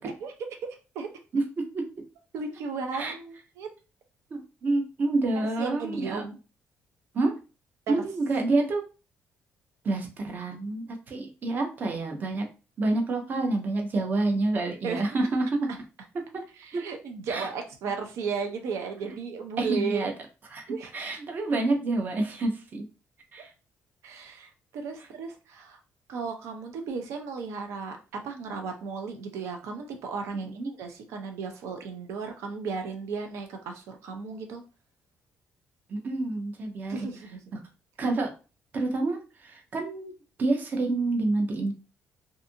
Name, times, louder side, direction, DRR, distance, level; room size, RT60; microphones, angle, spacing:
voice 1, 1.3-1.9 2.9-3.1 4.3-6.2 7.1-7.3 7.9-8.8 9.8-12.5 12.8-15.7 16.1-16.4 16.7-16.8 17.3-17.5 19.6-20.1 20.5-20.6 20.9-22.9 23.3-23.5 30.3-30.7 35.9-37.1 37.5-37.6 38.0-38.3 38.7-40.1 40.4-41.7, right 2 dB, 40° right, 3 dB, 0.6 m, -28 dB
voice 2, 2.3-3.7 5.6-6.4 7.9-8.0 14.8-15.0 16.6-20.1 20.7-20.9 24.0-25.8 26.1-34.6 36.9-37.4, right 5 dB, 85° right, 4 dB, 0.5 m, -35 dB
2.6 x 2.4 x 2.6 m, 0.32 s
cardioid pair, 140°, 5 cm